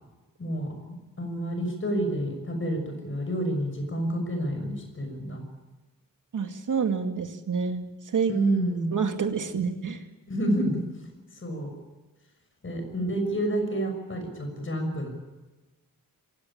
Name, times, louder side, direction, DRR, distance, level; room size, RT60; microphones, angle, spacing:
voice 1, 0.4-0.8 1.2-5.4 8.3-8.9 10.3-10.8 11.4-11.7 12.6-15.1, right 1 dB, 35° left, 5 dB, 6.3 m, -28 dB
voice 2, 6.3-8.3 8.9-10.0, right 6 dB, 65° right, 6 dB, 2.2 m, -28 dB
27.0 x 17.0 x 8.8 m, 1.2 s
wide cardioid pair, 155°, 34 cm